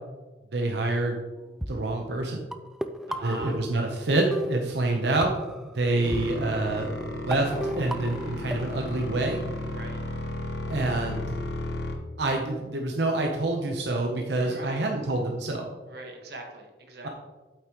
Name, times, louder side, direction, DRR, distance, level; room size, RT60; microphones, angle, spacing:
voice 1, 0.5-1.2 1.7-2.5 3.2-5.3 5.7-9.4 10.7-11.4 12.2-15.7, right 2 dB, 85° right, 2 dB, 0.8 m, -27 dB
sound 1, 1.6-1.7 2.5-4.0 4.3-5.7 6.1-6.2 7.0-7.1 7.3-8.9, equal, ahead, 0.3 m, -34 dB
voice 2, 3.1-3.6 6.4-6.8 9.7-10.2 14.3-15.1 15.9-17.1, right 2 dB, 65° right, 2 dB, 1.5 m, -42 dB
sound 2, 6.0-11.9, left 1 dB, 65° left, 1.2 m, -33 dB
8.5 x 8.0 x 3.0 m, 1.2 s
head